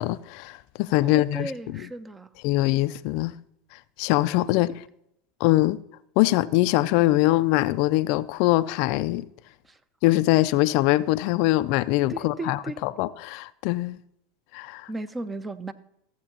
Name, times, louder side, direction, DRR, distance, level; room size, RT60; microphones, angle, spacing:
voice 1, 0.0-1.9 2.4-3.3 4.0-4.8 5.4-5.8 6.2-9.3 10.0-14.0 14.5-14.9, left 17 dB, 60° left, 0.4 m, -23 dB
voice 2, 1.0-2.3 4.5-4.7 9.7-9.8 12.1-12.8 14.9-15.7, right 2 dB, 15° right, 0.7 m, -35 dB
15.0 x 7.9 x 2.8 m
hypercardioid pair, 95°, 0 cm